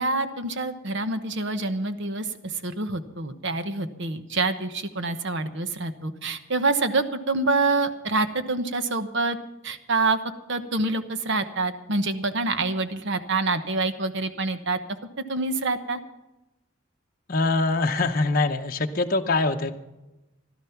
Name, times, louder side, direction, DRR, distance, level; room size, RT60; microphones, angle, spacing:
voice 1, 0.0-9.4 9.6-10.2 10.5-14.8 15.3-16.0, right 3 dB, 60° right, 10 dB, 1.0 m, -26 dB
voice 2, 17.3-19.7, left 3 dB, 45° left, 3 dB, 0.8 m, -23 dB
15.5 x 12.5 x 5.8 m, 1.0 s
head